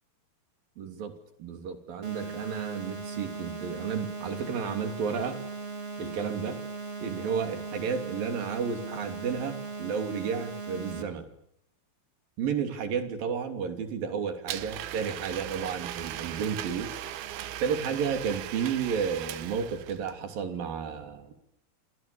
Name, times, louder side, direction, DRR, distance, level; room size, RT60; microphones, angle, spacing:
voice 1, 0.8-5.4 6.0-6.6 7.0-11.3 12.4-21.3, right 6 dB, 70° right, 7 dB, 4.7 m, -32 dB
sound 1, 2.0-11.0, right 4 dB, 20° right, 2.4 m, -38 dB
Domestic sounds home sounds, 14.5-20.1, right 12 dB, 85° right, 3.1 m, -38 dB
29.0 x 26.0 x 7.0 m, 0.76 s
omnidirectional pair, 4.3 m